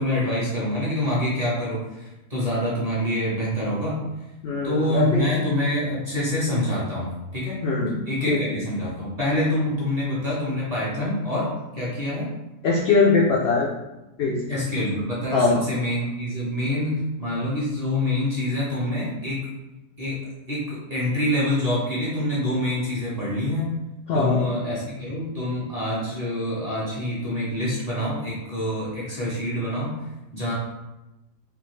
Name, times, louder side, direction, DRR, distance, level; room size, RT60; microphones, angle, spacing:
voice 1, 0.0-4.0 4.6-7.6 8.0-11.5 11.7-12.3 14.5-19.4 20.0-20.2 20.5-23.7 24.1-30.0 30.3-30.5, left 1 dB, 35° right, -8 dB, 0.7 m, -26 dB
voice 2, 4.4-5.2 7.6-8.0 8.3-8.4 12.6-13.8 14.2-14.4 15.3-15.6 24.1-24.4, left 4 dB, 85° left, -3 dB, 0.5 m, -21 dB
3.4 x 2.5 x 3.1 m, 0.99 s
omnidirectional pair, 1.6 m